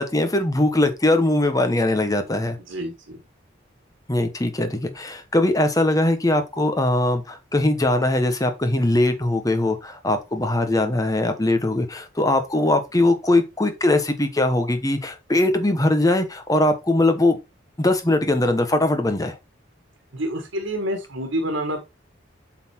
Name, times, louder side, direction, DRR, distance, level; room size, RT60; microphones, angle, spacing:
voice 1, 0.0-2.6 4.1-17.4 17.8-19.3, left 1 dB, 20° left, 1.0 m, -21 dB
voice 2, 2.7-3.2 20.1-21.9, right 1 dB, 85° right, 1.5 m, -28 dB
8.0 x 4.0 x 4.3 m
head